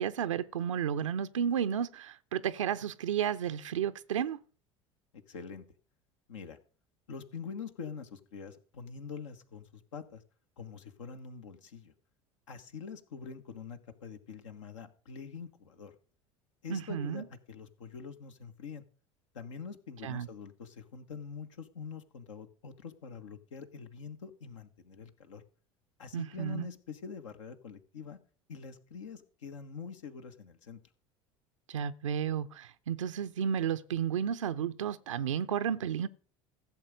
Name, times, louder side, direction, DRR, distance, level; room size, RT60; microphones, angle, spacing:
voice 1, 0.0-4.4 16.7-17.2 20.0-20.3 26.1-26.7 31.7-36.1, right 8 dB, 80° right, 0.6 m, -32 dB
voice 2, 5.1-5.6 6.3-6.6 7.1-10.2 10.6-11.9 12.5-15.9 16.6-18.8 19.3-25.4 26.0-28.2 28.5-30.8, left 6 dB, 75° left, 1.3 m, -45 dB
15.0 x 7.3 x 5.1 m
figure-of-eight pair, 70°, 16 cm